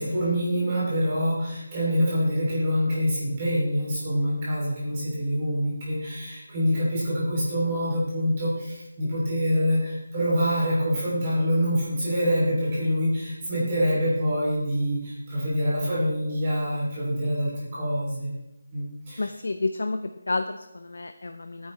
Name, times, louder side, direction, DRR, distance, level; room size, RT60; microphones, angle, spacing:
voice 1, 0.0-18.3 18.7-19.3, equal, 15° right, -7 dB, 3.0 m, -25 dB
voice 2, 19.2-20.0 20.3-21.7, left 3 dB, 60° left, 8 dB, 0.6 m, -30 dB
14.0 x 9.3 x 3.3 m, 0.91 s
figure-of-eight pair, 180°, 0 cm